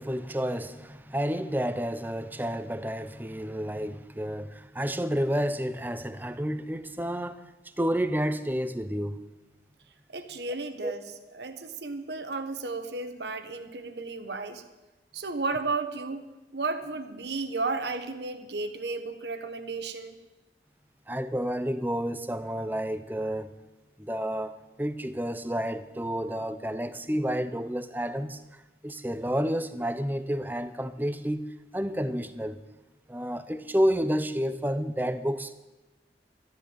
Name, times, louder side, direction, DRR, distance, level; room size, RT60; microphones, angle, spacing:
voice 1, 0.0-7.4 7.8-9.2 10.8-10.9 21.1-23.5 24.0-32.6 33.1-35.5, equal, 10° right, 0.7 m, -30 dB
voice 2, 10.1-14.6 15.1-16.2 16.5-20.2, right 3 dB, 75° right, 1.2 m, -33 dB
12.5 x 11.0 x 8.8 m
head